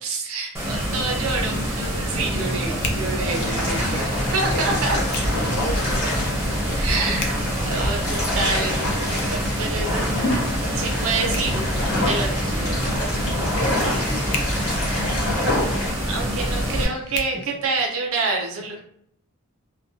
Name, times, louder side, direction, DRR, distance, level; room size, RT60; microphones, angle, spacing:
voice 1, 0.0-4.0 4.3-5.0 6.8-7.3 7.6-10.0 10.8-11.6 12.0-12.3 12.6-12.7 16.1-17.4 17.6-18.8, right 3 dB, 65° right, 1 dB, 0.5 m, -27 dB
sound 1, 0.5-16.8, equal, 10° right, 0.6 m, -26 dB
Hands, 0.6-18.2, left 3 dB, 80° left, 0.4 m, -40 dB
voice 2, 2.7-8.3 9.8-10.5 11.2-11.5 12.4-15.5 16.3-17.7 18.5-18.8, equal, 25° left, -2 dB, 0.5 m, -39 dB
sound 2, 3.3-15.9, left 1 dB, 65° left, 0.9 m, -27 dB
2.2 x 2.1 x 2.6 m, 0.69 s
head